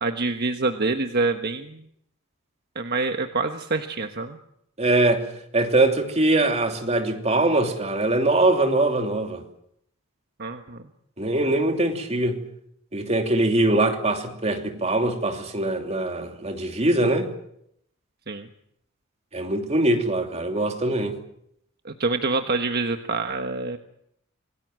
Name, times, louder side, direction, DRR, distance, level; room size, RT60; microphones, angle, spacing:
voice 1, 0.0-1.8 2.7-4.4 10.4-10.8 18.3-18.5 21.8-23.8, right 3 dB, 50° right, 1.3 m, -26 dB
voice 2, 4.8-5.2 5.5-9.4 11.2-12.4 12.9-17.3 19.3-21.2, right 2 dB, 30° right, 2.9 m, -22 dB
26.5 x 19.0 x 7.7 m
head